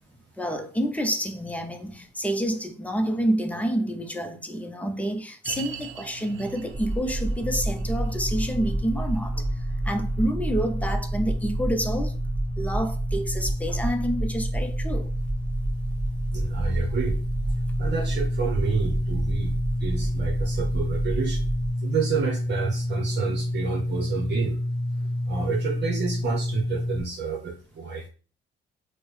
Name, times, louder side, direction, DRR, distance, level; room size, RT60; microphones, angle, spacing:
voice 1, 0.4-9.5 9.8-12.2 12.6-15.1, equal, 5° left, 0.6 m, -28 dB
sound 1, 5.4-16.7 17.0-17.1 17.7-17.8, right 6 dB, 90° right, 0.6 m, -45 dB
sound 2, 6.7-21.7, right 1 dB, 10° right, 1.4 m, -29 dB
sound 3, 7.4-27.0, left 1 dB, 25° right, 1.1 m, -30 dB
voice 2, 16.3-17.2 17.8-21.5 21.8-24.6 25.3-28.1, right 5 dB, 60° right, 0.8 m, -30 dB
4.3 x 2.1 x 3.2 m
cardioid pair, 90°, 20 cm